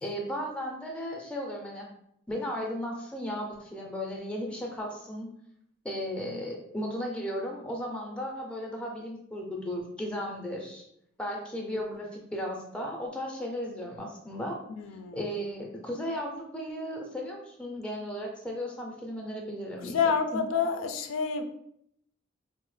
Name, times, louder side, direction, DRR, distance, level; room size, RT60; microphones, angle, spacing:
voice 1, 0.0-1.9 2.3-5.3 5.8-10.8 11.2-14.6 15.1-20.0 20.3-20.4, equal, 5° left, 0 dB, 0.5 m, -35 dB
voice 2, 14.8-15.2 19.8-21.4, left 6 dB, 85° left, 7 dB, 0.4 m, -28 dB
3.9 x 2.0 x 3.1 m, 0.74 s
head